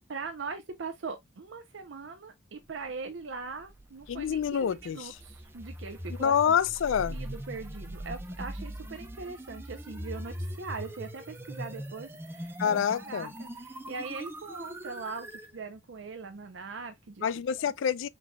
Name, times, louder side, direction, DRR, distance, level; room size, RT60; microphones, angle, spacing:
voice 1, 0.1-6.6 7.1-17.3, right 4 dB, 75° right, 0.6 m, -41 dB
sound 1, 3.4-15.5, right 1 dB, 10° right, 0.6 m, -41 dB
voice 2, 4.1-5.1 6.2-7.2 12.6-13.3 17.2-18.1, left 8 dB, 85° left, 0.4 m, -27 dB
4.7 x 4.0 x 2.2 m
head